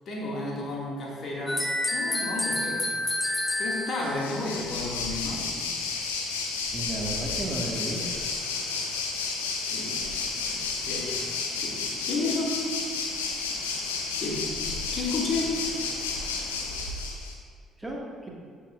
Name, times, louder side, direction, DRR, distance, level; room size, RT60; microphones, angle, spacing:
voice 1, 0.1-1.6 1.9-2.8 3.6-5.5 9.7-10.1 10.5-11.1 11.6-11.8 12.0-12.7 14.2-14.5 14.9-15.6, left 2 dB, 45° left, -3 dB, 2.2 m, -32 dB
sound 1, 1.5-4.3, left 1 dB, 15° left, 0.7 m, -29 dB
Waves surf, 4.0-17.3, left 4 dB, 70° left, 0.9 m, -31 dB
voice 2, 6.7-8.2 17.8-18.3, right 1 dB, 10° right, -3 dB, 1.9 m, -33 dB
15.0 x 7.1 x 2.5 m, 2.1 s
figure-of-eight pair, 50°, 0 cm